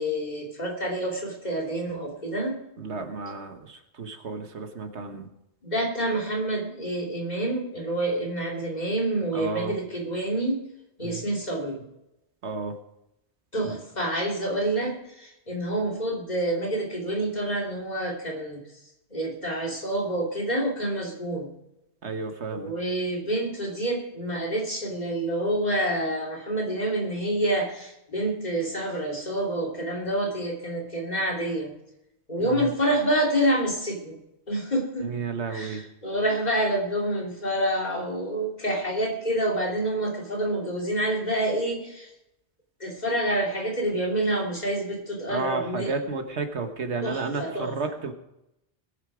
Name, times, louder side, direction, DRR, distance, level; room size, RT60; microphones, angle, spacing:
voice 1, 0.0-2.6 5.1-5.2 5.6-10.6 11.0-11.8 13.5-18.6 19.1-21.5 22.5-31.7 32.3-34.2 34.5-35.1 35.5-42.1 42.8-46.0 47.0-47.7, right 1 dB, 40° left, -1 dB, 3.0 m, -27 dB
voice 2, 2.8-5.3 9.3-9.7 11.0-11.2 12.4-12.7 22.0-22.7 32.4-32.7 35.0-35.8 45.3-48.1, right 4 dB, 80° right, 6 dB, 1.6 m, -32 dB
21.0 x 7.6 x 4.9 m, 0.84 s
omnidirectional pair, 1.1 m